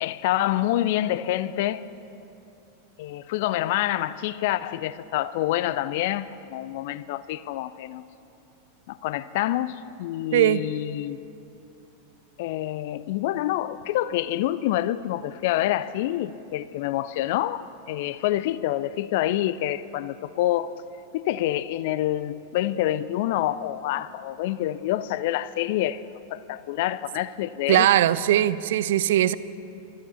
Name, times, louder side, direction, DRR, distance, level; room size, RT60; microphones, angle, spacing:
voice 1, 0.0-1.8 3.0-8.0 8.9-11.2 12.4-20.7 21.1-26.0 26.3-27.9, left 14 dB, 50° left, 0.4 m, -27 dB
voice 2, 10.3-10.6 27.7-29.3, right 12 dB, 55° right, 0.4 m, -20 dB
14.5 x 13.0 x 7.0 m
figure-of-eight pair, 90°, 0 cm